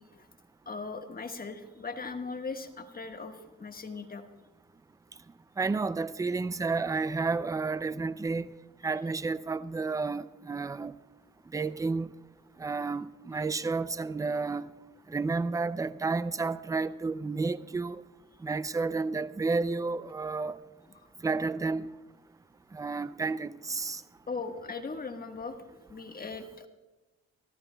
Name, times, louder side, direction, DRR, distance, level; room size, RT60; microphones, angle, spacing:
voice 1, 0.6-4.2 24.3-26.7, left 4 dB, 30° left, 1.4 m, -39 dB
voice 2, 5.6-8.5 8.8-10.9 11.5-12.1 12.6-14.7 15.1-18.0 18.4-20.6 21.2-21.9 22.7-24.0, right 4 dB, 10° right, 0.4 m, -31 dB
24.0 x 14.0 x 2.3 m
cardioid pair, 90°, 30 cm